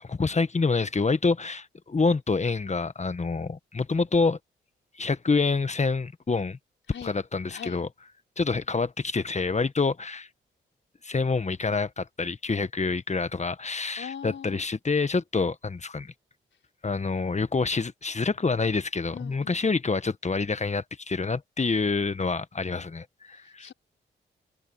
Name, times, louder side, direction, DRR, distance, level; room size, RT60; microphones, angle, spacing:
voice 1, 0.0-4.4 4.9-6.6 7.0-7.9 8.4-10.3 11.0-16.1 16.8-23.7, left 4 dB, 35° left, 1.4 m, -27 dB
voice 2, 6.9-7.2 7.5-7.8 14.0-14.6 19.1-19.6 23.3-23.7, left 8 dB, 70° left, 5.5 m, -41 dB
supercardioid pair, 55°, 20 cm